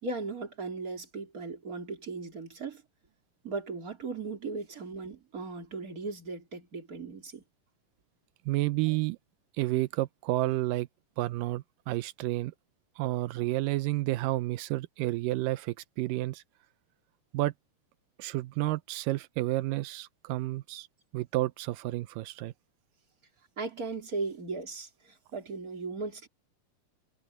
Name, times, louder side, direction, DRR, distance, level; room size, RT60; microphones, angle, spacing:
voice 1, 0.0-2.8 3.4-7.4 23.6-26.3, right 3 dB, 25° right, 3.7 m, -37 dB
voice 2, 8.5-9.2 9.6-10.9 11.2-12.5 13.0-16.4 17.3-17.5 18.2-20.9 21.1-22.5, right 18 dB, 90° right, 2.3 m, -30 dB
omnidirectional pair, 3.8 m